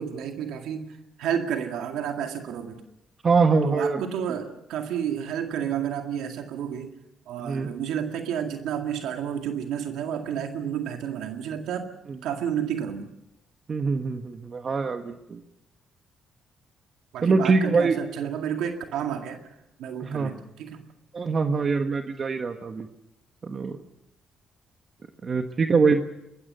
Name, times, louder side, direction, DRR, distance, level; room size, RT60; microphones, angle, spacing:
voice 1, 0.0-2.8 3.6-6.9 7.3-11.9 12.2-13.1 17.1-19.5 19.8-20.9, right 8 dB, 85° right, 4 dB, 2.0 m, -31 dB
voice 2, 3.2-4.0 7.4-7.7 13.7-15.4 17.2-18.0 20.0-20.3 21.1-22.9 23.4-23.8 25.2-26.0, right 4 dB, 40° right, 6 dB, 1.4 m, -23 dB
23.0 x 21.0 x 6.8 m, 0.86 s
cardioid pair, 90°, 0 cm